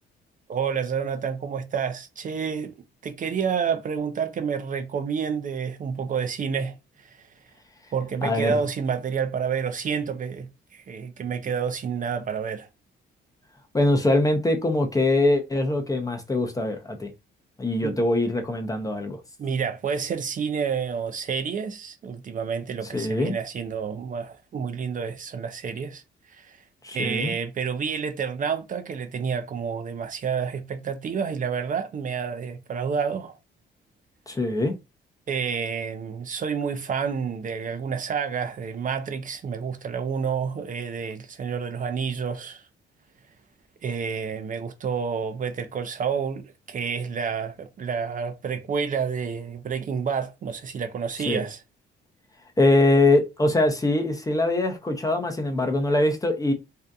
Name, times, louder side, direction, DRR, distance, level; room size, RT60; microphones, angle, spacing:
voice 1, 0.5-2.7 3.0-7.3 7.9-12.7 17.8-18.0 19.4-26.0 26.3-26.6 26.9-33.4 35.3-42.7 43.8-51.6, right 6 dB, 40° right, 0.5 m, -29 dB
voice 2, 8.2-8.6 13.7-17.1 17.6-19.2 22.9-23.3 26.8-27.3 34.3-34.7 51.3-51.4 52.6-56.5, left 2 dB, 15° left, 0.6 m, -23 dB
2.6 x 2.4 x 2.3 m
cardioid pair, 90°, 20 cm